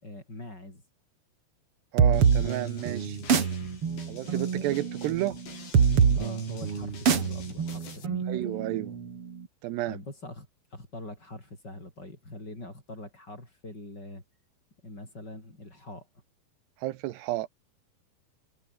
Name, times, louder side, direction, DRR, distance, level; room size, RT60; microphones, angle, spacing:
voice 1, 0.0-0.8 4.1-4.3 6.1-8.3 9.9-14.2 14.8-16.1, left 2 dB, 25° left, 7.7 m, -43 dB
voice 2, 1.9-3.2 4.1-5.4 8.3-8.9 9.6-10.0 16.8-17.5, right 16 dB, 85° right, 3.2 m, -31 dB
sound 1, 2.0-9.4, right 6 dB, 40° right, 2.8 m, -25 dB
sound 2, 2.1-8.0, left 5 dB, 75° left, 8.3 m, -47 dB
omnidirectional pair, 4.8 m